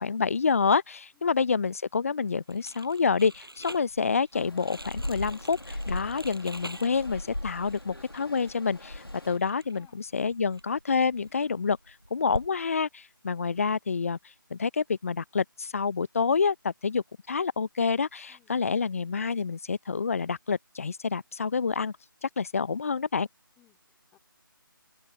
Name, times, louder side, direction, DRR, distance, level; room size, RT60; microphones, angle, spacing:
voice 1, 0.0-14.2 14.5-21.9 22.2-23.3, left 5 dB, 40° left, 0.8 m, -28 dB
Crumpling crinkling, 2.5-12.5, right 1 dB, 85° right, 7.0 m, -45 dB
sound 1, 4.3-9.4, left 1 dB, 85° left, 2.2 m, -38 dB
voice 2, 18.3-18.6 23.6-24.2, left 14 dB, 10° left, 3.8 m, -63 dB
open air
figure-of-eight pair, 155°, 12 cm